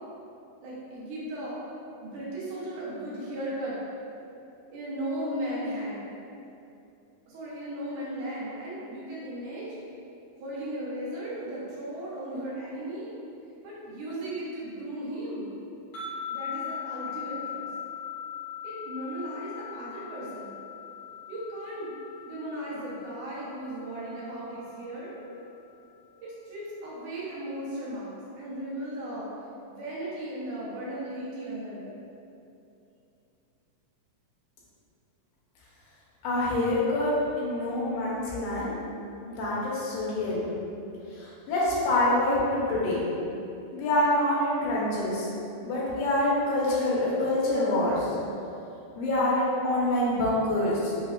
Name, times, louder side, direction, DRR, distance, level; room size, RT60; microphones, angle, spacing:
voice 1, 0.6-1.6 2.0-3.8 4.7-6.1 7.3-9.7 10.4-13.1 13.6-15.5 16.3-17.7 18.6-20.6 21.3-21.9 22.3-25.2 26.2-28.1 28.4-29.3 29.7-31.9, right 1 dB, 90° right, -8 dB, 2.3 m, -36 dB
sound 1, 15.9-25.2, left 8 dB, 65° left, 0.9 m, -40 dB
voice 2, 36.2-38.8 39.3-40.6 41.1-43.0 43.7-45.3 45.6-48.1 49.0-50.9, left 1 dB, 85° left, -6 dB, 2.2 m, -26 dB
5.7 x 2.1 x 2.4 m, 2.7 s
omnidirectional pair, 3.4 m